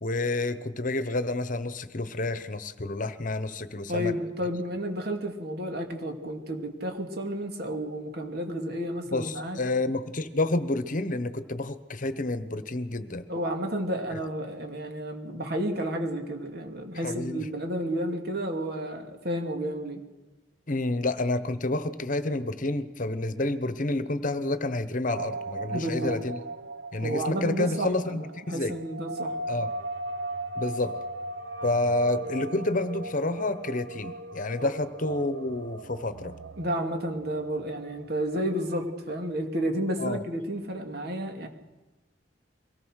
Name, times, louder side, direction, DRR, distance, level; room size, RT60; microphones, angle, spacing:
voice 1, 0.0-4.1 9.1-13.3 14.1-14.2 17.0-17.5 20.7-26.4 26.9-28.8 29.5-29.7 30.6-31.0 31.6-36.3 40.0-40.2, left 2 dB, 45° left, 12 dB, 1.1 m, -29 dB
voice 2, 3.9-9.6 13.3-20.0 25.7-26.2 27.0-29.4 34.6-34.7 36.6-41.5, right 1 dB, 60° right, 4 dB, 2.8 m, -31 dB
sound 1, 25.1-38.9, right 2 dB, 85° right, 1.0 m, -38 dB
23.5 x 18.0 x 6.5 m, 1.1 s
head